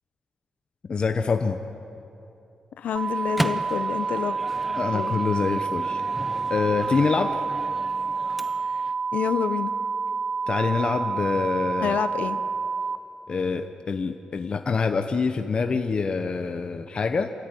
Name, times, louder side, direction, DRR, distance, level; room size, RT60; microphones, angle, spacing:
voice 1, 0.9-1.6 4.8-6.0 6.5-7.4 10.5-12.0 13.3-17.3, left 4 dB, 40° left, 6 dB, 0.9 m, -25 dB
voice 2, 2.8-4.4 4.9-5.2 9.1-9.7 11.8-12.4, left 8 dB, 75° left, 11 dB, 0.7 m, -28 dB
Microwave oven, 2.9-8.9, equal, 5° right, 0.8 m, -36 dB
sound 1, 3.0-13.0, right 4 dB, 40° right, 0.5 m, -28 dB
27.5 x 13.5 x 9.3 m, 2.7 s
wide cardioid pair, 125°, 3 cm